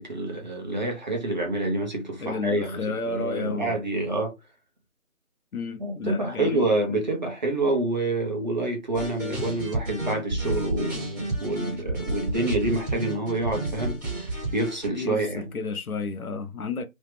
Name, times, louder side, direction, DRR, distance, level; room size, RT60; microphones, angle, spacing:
voice 1, 0.0-4.3 5.8-15.5, right 2 dB, 30° right, 1.0 m, -27 dB
voice 2, 2.2-3.7 5.5-6.7 14.9-16.9, left 4 dB, 80° left, 0.8 m, -31 dB
sound 1, 8.9-14.9, right 2 dB, 15° right, 1.6 m, -31 dB
3.2 x 2.9 x 3.3 m
figure-of-eight pair, 170°, 43 cm